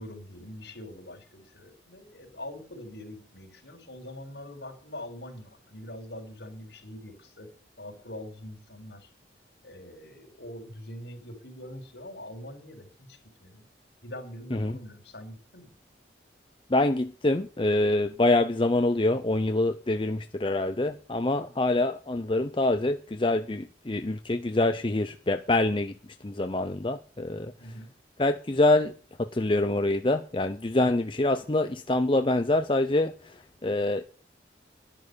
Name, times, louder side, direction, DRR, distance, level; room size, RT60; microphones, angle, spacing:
voice 1, 0.0-7.5 7.8-9.1 9.6-13.6 14.0-15.7 27.6-27.9, left 1 dB, 70° left, 4 dB, 4.3 m, -43 dB
voice 2, 16.7-25.9 26.2-27.5 28.2-28.9 29.2-33.1 33.6-34.0, left 2 dB, 25° left, 8 dB, 0.6 m, -25 dB
11.0 x 11.0 x 6.8 m, 0.40 s
head